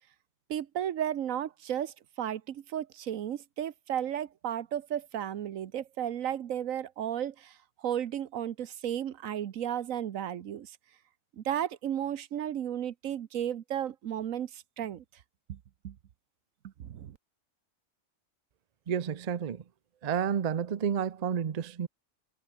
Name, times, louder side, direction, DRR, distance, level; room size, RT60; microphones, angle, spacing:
voice 1, 0.5-10.8 11.4-15.0 15.5-15.6 15.8-15.9 16.6-17.2, right 10 dB, 80° right, 1.3 m, -34 dB
voice 2, 18.9-19.6 20.0-21.9, right 8 dB, 40° right, 0.6 m, -30 dB
omnidirectional pair, 1.4 m